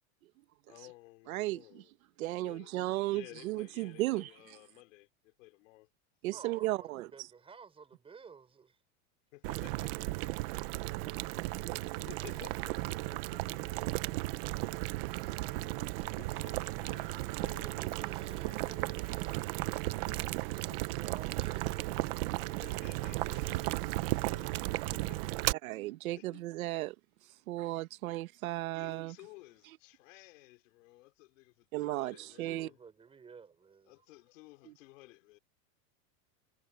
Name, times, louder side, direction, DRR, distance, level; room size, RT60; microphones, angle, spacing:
voice 1, 0.7-1.9 2.2-2.7 3.1-5.9 9.3-10.1 11.7-11.8 12.1-13.8 15.5-15.7 16.0-19.4 20.6-20.8 22.5-25.2 26.2-26.4 28.7-32.8 33.9-35.4, left 21 dB, 65° left, 4.0 m, -55 dB
voice 2, 1.3-1.8 2.2-4.3 6.2-7.1 14.1-14.2 14.5-14.7 25.6-26.9 27.5-29.2 31.7-32.7 34.7-34.8, right 18 dB, 75° right, 1.4 m, -35 dB
voice 3, 2.6-3.1 6.3-8.8 17.6-22.8 32.0-34.1, right 5 dB, 15° right, 4.9 m, -55 dB
Boiling, 9.4-25.5, right 20 dB, 45° right, 0.8 m, -35 dB
Wind, 15.3-20.6, left 16 dB, 80° left, 7.1 m, -67 dB
supercardioid pair, 170°, 42 cm